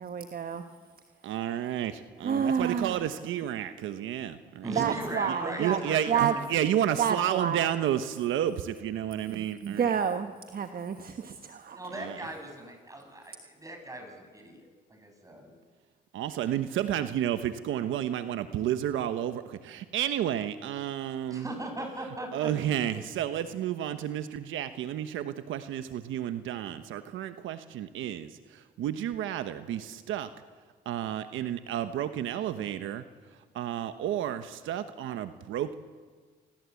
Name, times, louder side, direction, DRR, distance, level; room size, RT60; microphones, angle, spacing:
voice 1, 0.0-0.6 2.2-3.0 4.7-5.8 6.1-6.3 7.0-7.7 9.3-11.8, right 7 dB, 50° right, 7 dB, 1.3 m, -29 dB
voice 2, 1.2-4.9 5.3-9.9 12.0-12.2 16.1-21.5 22.3-30.3 30.9-33.0 33.5-35.7, right 11 dB, 85° right, 10 dB, 1.1 m, -31 dB
voice 3, 4.6-6.4 11.7-15.5 21.3-23.0, right 1 dB, 15° right, 4 dB, 7.6 m, -39 dB
27.0 x 19.5 x 8.4 m, 1.5 s
cardioid pair, 90°, 20 cm